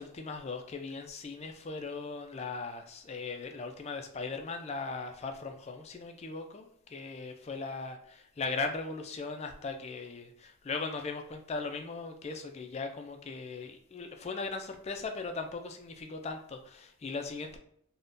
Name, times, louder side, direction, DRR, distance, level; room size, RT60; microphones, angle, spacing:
voice 1, 0.0-17.6, left 4 dB, 30° left, 5 dB, 0.3 m, -38 dB
3.5 x 2.1 x 2.5 m, 0.69 s
head